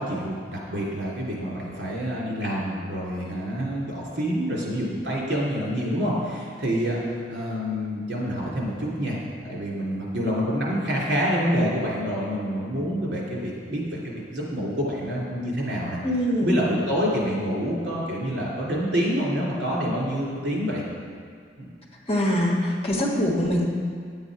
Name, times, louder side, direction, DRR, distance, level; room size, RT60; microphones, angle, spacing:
voice 1, 0.0-7.0 7.3-16.0 16.4-20.8 21.6-21.7, equal, 90° right, -4 dB, 3.0 m, -27 dB
voice 2, 16.0-16.6 22.1-23.6, equal, 35° left, -2 dB, 1.4 m, -23 dB
10.0 x 8.0 x 4.9 m, 2.1 s
head